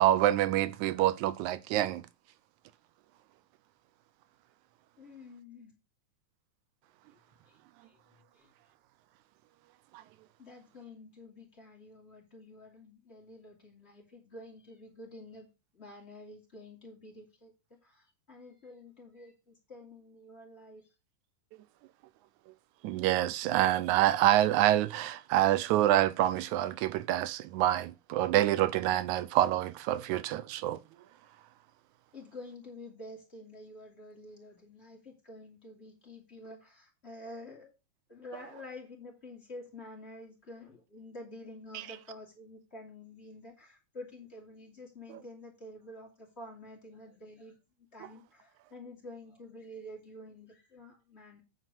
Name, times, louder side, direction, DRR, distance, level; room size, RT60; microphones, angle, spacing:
voice 1, 0.0-2.0 22.8-30.8 41.7-42.0 45.1-45.2, right 13 dB, 90° right, 2.0 m, -27 dB
voice 2, 5.0-5.7 7.8-8.0 8.3-8.5 10.4-15.5 15.7-17.5 17.8-20.8 32.1-37.7 38.1-47.5 47.9-51.4, left 1 dB, 20° left, 2.6 m, -49 dB
9.0 x 4.4 x 6.0 m
omnidirectional pair, 3.4 m